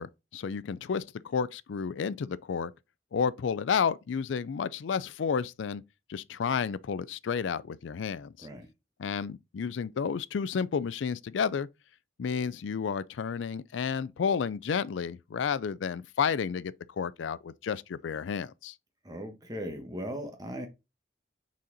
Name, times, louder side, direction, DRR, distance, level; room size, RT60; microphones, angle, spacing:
voice 1, 0.0-2.7 3.1-5.8 6.1-8.5 9.0-11.7 12.2-18.7, left 6 dB, 90° left, 0.4 m, -31 dB
voice 2, 19.0-20.7, equal, 20° right, 1.3 m, -38 dB
6.2 x 4.3 x 4.0 m
head